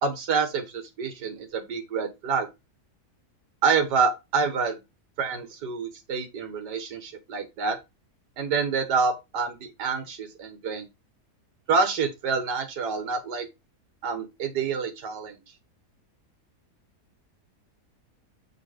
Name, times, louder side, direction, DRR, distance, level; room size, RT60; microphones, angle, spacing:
voice 1, 0.0-2.5 3.6-4.8 5.2-7.8 8.4-10.9 11.7-13.5 14.0-15.4, right 5 dB, 75° right, 1.9 m, -27 dB
6.8 x 4.7 x 5.0 m
omnidirectional pair, 1.8 m